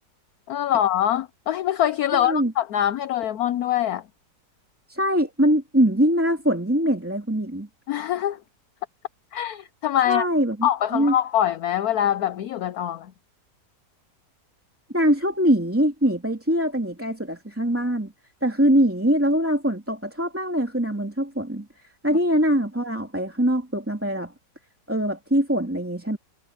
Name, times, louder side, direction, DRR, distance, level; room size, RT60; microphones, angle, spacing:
voice 1, 0.5-4.0 7.9-8.4 9.3-10.3 10.6-13.1, left 11 dB, 65° left, 1.1 m, -24 dB
voice 2, 2.1-2.5 4.9-7.7 10.1-11.1 14.9-18.1 18.4-21.7 22.0-24.3 24.9-26.2, equal, 5° right, 2.7 m, -22 dB
omnidirectional pair, 1.9 m